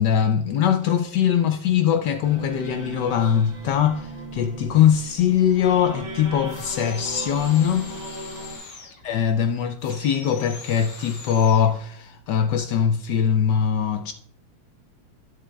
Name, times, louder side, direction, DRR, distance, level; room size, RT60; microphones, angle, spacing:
voice 1, 0.0-7.9 9.0-14.1, left 8 dB, 80° left, 0.9 m, -21 dB
sound 1, 2.2-8.6, right 2 dB, 50° right, 2.8 m, -37 dB
sound 2, 6.5-9.1 9.8-11.7, left 3 dB, 55° left, 1.8 m, -42 dB
11.5 x 10.0 x 2.2 m
omnidirectional pair, 2.4 m